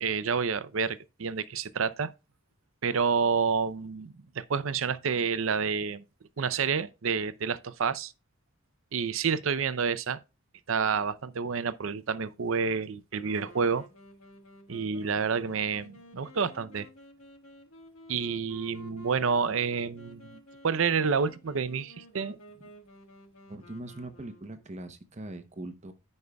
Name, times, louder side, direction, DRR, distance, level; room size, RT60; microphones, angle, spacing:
voice 1, 0.0-2.1 2.8-6.0 6.4-8.1 8.9-10.2 10.7-13.8 14.7-16.9 18.1-22.4, right 5 dB, 70° right, 0.6 m, -29 dB
Wind instrument woodwind instrument, 13.1-24.9, equal, 90° left, 1.6 m, -52 dB
voice 2, 23.5-25.9, right 1 dB, 35° right, 0.8 m, -41 dB
14.5 x 5.4 x 2.3 m
head